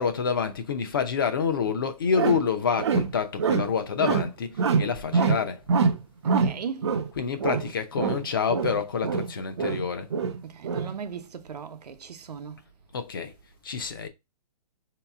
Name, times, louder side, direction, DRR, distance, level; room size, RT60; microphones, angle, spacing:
voice 1, 0.0-5.6 7.1-10.1 12.9-13.3 13.6-14.1, left 6 dB, 35° left, 0.6 m, -27 dB
sound 1, 1.7-1.8 2.1-2.5 2.8-3.7 4.0-4.3 4.6-5.4 5.7-7.1 7.4-7.7 8.0-9.3 9.6-11.0, right 5 dB, 45° right, 0.4 m, -25 dB
voice 2, 6.2-6.9 10.4-12.6, right 6 dB, 90° right, 0.8 m, -38 dB
4.8 x 2.9 x 3.5 m
hypercardioid pair, 175°, 20 cm